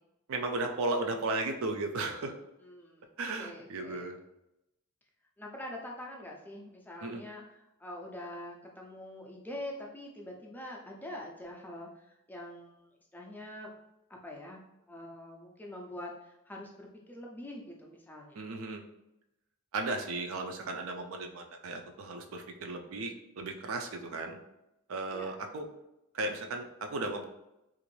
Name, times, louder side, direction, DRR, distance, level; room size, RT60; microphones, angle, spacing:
voice 1, 0.3-2.3 3.2-4.2 7.0-7.2 18.3-18.8 19.7-24.4 24.9-25.7 26.1-27.3, right 2 dB, 65° right, 4 dB, 0.4 m, -35 dB
voice 2, 2.6-3.1 3.4-4.1 5.4-13.7 14.1-14.6 14.9-18.4 25.1-25.3, left 1 dB, 10° left, -1 dB, 0.4 m, -45 dB
3.0 x 2.5 x 3.1 m, 0.89 s
head